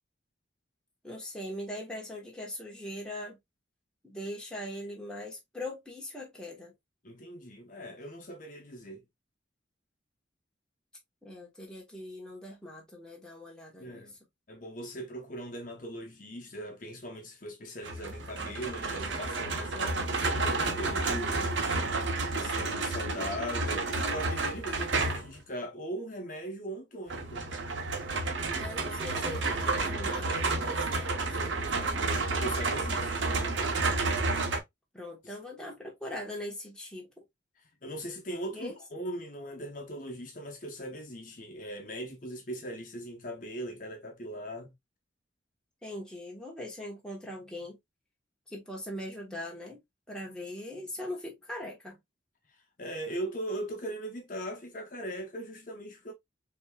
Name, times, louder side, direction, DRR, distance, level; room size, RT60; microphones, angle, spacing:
voice 1, 1.0-3.4 4.0-6.7 11.2-14.0 28.6-32.4 34.9-37.2 38.5-38.8 45.8-47.8 48.5-49.8 50.1-52.0, left 1 dB, 5° left, 1.2 m, -41 dB
voice 2, 7.0-9.0 13.8-14.2 14.5-22.0 22.3-27.5 32.4-33.6 35.2-35.3 37.8-44.7 52.8-56.1, equal, 45° left, 1.0 m, -40 dB
sound 1, 17.8-25.4 27.1-34.6, right 3 dB, 75° right, 1.0 m, -30 dB
5.2 x 3.0 x 2.3 m
head